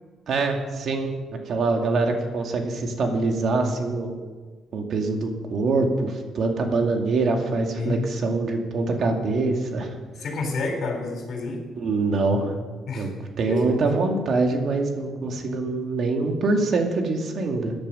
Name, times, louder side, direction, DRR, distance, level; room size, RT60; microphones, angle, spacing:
voice 1, 0.3-1.1 1.5-4.2 4.7-9.9 11.8-12.5 12.9-13.1 13.4-17.7, right 3 dB, 60° right, 3 dB, 2.2 m, -24 dB
voice 2, 10.2-11.6 12.9-13.1 13.5-13.6, left 3 dB, 60° left, 3 dB, 3.6 m, -29 dB
14.5 x 10.5 x 5.6 m, 1.4 s
cardioid pair, 90°, 0 cm